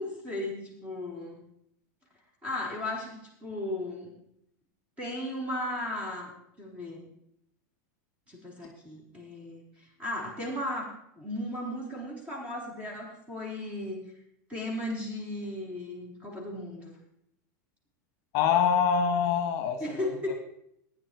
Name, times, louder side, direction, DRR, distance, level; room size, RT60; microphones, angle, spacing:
voice 1, 0.0-1.4 2.4-4.1 5.0-7.1 8.3-14.0 14.5-17.0 19.8-20.4, left 1 dB, 15° right, -1 dB, 4.2 m, -36 dB
voice 2, 18.3-20.1, left 7 dB, 35° left, 6 dB, 1.5 m, -25 dB
15.5 x 10.0 x 4.6 m, 0.74 s
supercardioid pair, 160°, 10 cm